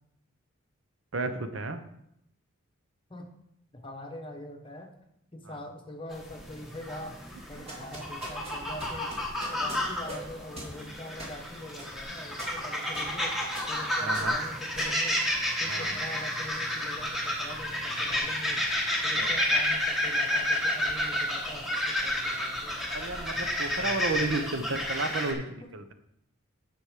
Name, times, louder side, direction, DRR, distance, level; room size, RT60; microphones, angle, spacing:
voice 1, 1.1-1.8 5.4-5.6 14.0-14.4 15.7-15.9 19.2-19.3 22.9-25.9, right 3 dB, 65° right, 9 dB, 0.8 m, -33 dB
voice 2, 3.7-4.9 5.3-7.2 7.5-13.4 13.7-15.2 15.6-18.6 19.0-23.5 23.8-23.9 25.3-25.7, left 1 dB, 25° left, 3 dB, 1.1 m, -43 dB
sound 1, 6.1-25.3, left 1 dB, ahead, 1.5 m, -30 dB
sound 2, 7.7-15.9, right 1 dB, 30° right, 2.2 m, -44 dB
9.6 x 6.2 x 4.9 m, 0.77 s
head